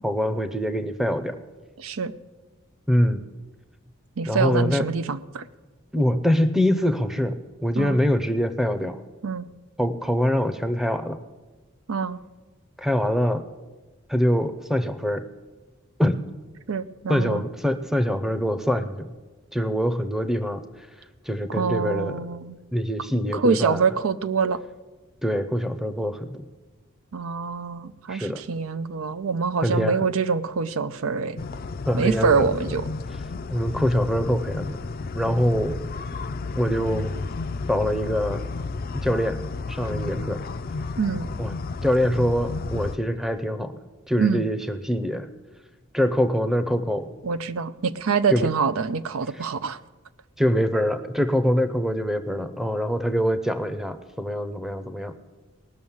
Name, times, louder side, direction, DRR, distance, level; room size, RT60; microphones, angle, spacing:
voice 1, 0.0-1.4 2.9-3.2 4.2-4.8 5.9-7.4 7.6-9.0 9.8-11.2 12.8-13.4 14.1-15.2 16.0-16.2 17.1-19.1 19.5-20.6 21.3-22.2 22.7-23.8 25.2-26.4 28.1-28.4 29.6-30.0 31.9-32.5 33.5-34.8 35.1-35.8 36.5-37.1 37.7-38.5 38.9-39.4 39.7-40.4 41.4-41.5 41.8-43.7 44.1-45.3 45.9-47.1 48.3-48.5 50.4-55.1, equal, ahead, 10 dB, 0.6 m, -24 dB
voice 2, 1.8-2.1 4.2-5.5 7.8-8.0 9.2-9.5 11.9-12.2 16.7-17.4 21.5-22.5 23.3-24.6 27.1-31.4 31.9-32.9 41.0-41.3 44.2-44.4 47.2-49.8, right 5 dB, 90° right, 13 dB, 0.6 m, -25 dB
sound 1, 31.4-43.0, left 3 dB, 45° left, 0.4 m, -32 dB
19.0 x 6.3 x 7.2 m, 1.2 s
head